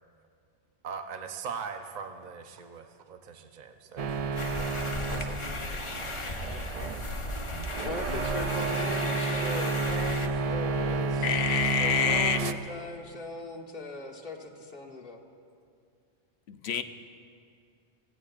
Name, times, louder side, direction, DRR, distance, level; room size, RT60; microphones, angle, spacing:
voice 1, 0.8-4.3 5.1-5.4, right 6 dB, 45° right, 6 dB, 0.8 m, -40 dB
sound 1, 4.0-12.5, right 4 dB, 70° right, 0.3 m, -31 dB
sound 2, 4.4-10.3, left 3 dB, 30° left, 0.7 m, -36 dB
voice 2, 7.8-15.2, left 3 dB, 50° left, -1 dB, 1.6 m, -39 dB
voice 3, 11.2-12.4 16.5-16.8, left 7 dB, 65° left, 9 dB, 0.9 m, -27 dB
24.5 x 16.0 x 2.5 m, 2.3 s
omnidirectional pair, 1.2 m